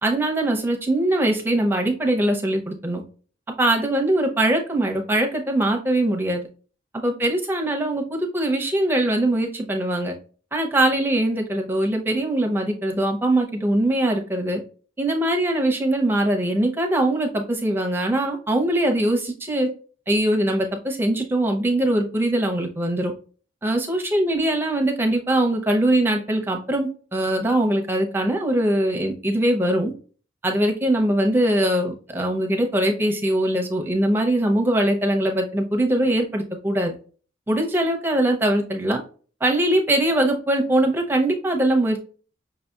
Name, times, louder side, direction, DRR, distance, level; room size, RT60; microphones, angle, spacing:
voice 1, 0.0-3.0 3.6-6.4 6.9-10.1 10.5-14.6 15.0-19.7 20.1-23.1 23.6-29.9 30.4-36.9 37.5-39.0 39.4-42.0, right 1 dB, 10° right, 2 dB, 0.6 m, -22 dB
5.6 x 2.7 x 2.3 m, 0.39 s
head